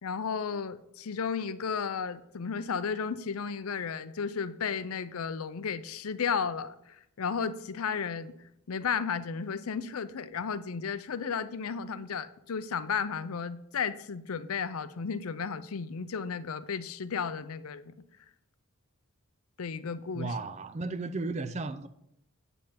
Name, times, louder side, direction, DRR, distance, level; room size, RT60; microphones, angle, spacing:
voice 1, 0.0-8.3 8.7-17.9 19.6-20.4, left 6 dB, 75° left, 0.5 m, -33 dB
voice 2, 20.1-21.9, right 3 dB, 30° right, 0.4 m, -34 dB
8.7 x 5.4 x 5.8 m
head